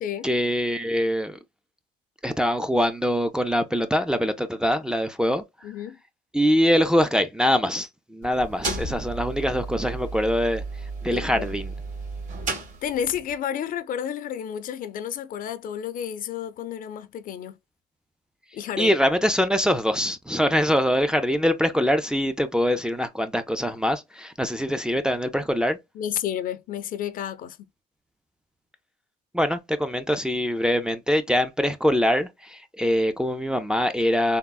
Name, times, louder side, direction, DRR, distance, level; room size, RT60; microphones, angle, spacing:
voice 1, 0.2-1.4 2.2-5.4 6.3-10.6 11.0-11.7 18.8-25.8 29.3-34.4, equal, 5° right, 0.4 m, -23 dB
voice 2, 5.6-6.0 11.1-11.5 12.8-17.6 18.5-18.9 25.9-27.6, left 9 dB, 55° left, 0.5 m, -31 dB
sound 1, 8.2-13.3, right 3 dB, 45° right, 1.6 m, -33 dB
3.6 x 2.0 x 2.2 m
cardioid pair, 110°, 17 cm